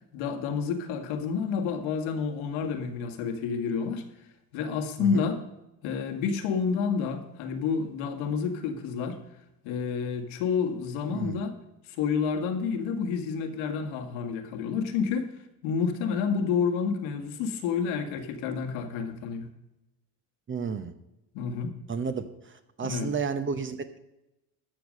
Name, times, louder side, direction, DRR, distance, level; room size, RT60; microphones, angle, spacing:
voice 1, 0.1-4.0 4.5-5.4 5.8-9.2 9.6-11.5 11.9-15.3 15.6-19.5 21.3-21.7 22.8-23.1, left 6 dB, 75° left, 5 dB, 2.0 m, -29 dB
voice 2, 11.1-11.4 20.5-20.9 21.9-22.3 22.8-24.0, right 5 dB, 25° right, 10 dB, 0.9 m, -31 dB
13.0 x 7.1 x 6.6 m, 0.92 s
cardioid pair, 120°, 46 cm